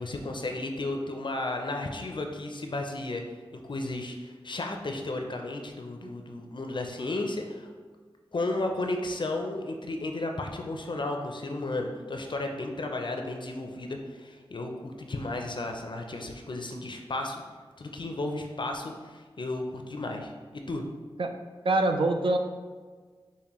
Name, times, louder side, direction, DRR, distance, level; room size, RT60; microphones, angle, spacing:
voice 1, 0.0-3.2 3.7-7.7 8.3-17.4 17.8-20.8, left 2 dB, 50° left, 3 dB, 0.4 m, -33 dB
voice 2, 21.6-22.4, right 2 dB, 60° right, 6 dB, 0.4 m, -24 dB
5.3 x 2.1 x 3.0 m, 1.5 s
cardioid pair, 45°, 10 cm